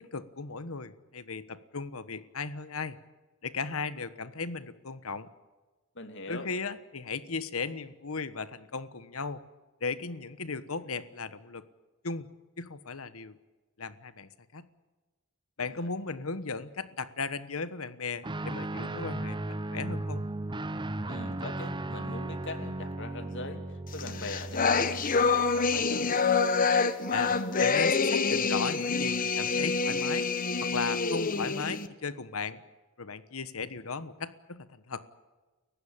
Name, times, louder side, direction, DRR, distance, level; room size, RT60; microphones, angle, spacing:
voice 1, 0.0-3.0 3.4-5.3 6.3-9.4 9.8-11.6 12.0-12.3 12.6-13.4 13.8-14.7 15.6-20.2 27.1-27.3 27.6-30.3 30.6-32.6 33.0-35.0, left 4 dB, 80° left, 13 dB, 1.3 m, -36 dB
voice 2, 5.9-6.5 15.8-15.9 21.1-26.3, left 2 dB, 60° left, 7 dB, 2.8 m, -41 dB
Guitar, 18.2-25.9, right 2 dB, 20° right, 0.8 m, -36 dB
sound 1, 24.0-31.9, left 4 dB, 40° left, 1.2 m, -27 dB
29.5 x 15.5 x 8.8 m, 1.2 s
head